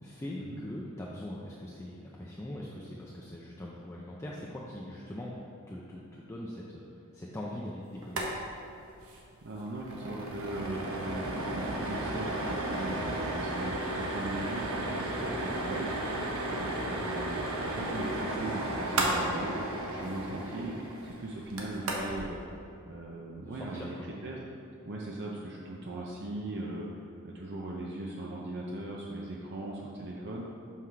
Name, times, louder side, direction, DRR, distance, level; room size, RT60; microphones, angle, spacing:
voice 1, 0.0-6.8 7.1-8.2 15.0-15.3 23.5-24.1, left 1 dB, 15° left, -5 dB, 0.5 m, -42 dB
sound 1, 8.0-8.3 8.6-8.7 9.0-9.2 9.6-22.2, right 1 dB, 75° right, 1.0 m, -34 dB
voice 2, 9.4-16.2 16.5-20.7 21.0-22.4 22.9-24.0 24.2-24.4 24.8-30.4, right 1 dB, 50° right, -2 dB, 0.6 m, -39 dB
5.8 x 4.8 x 5.7 m, 2.7 s
head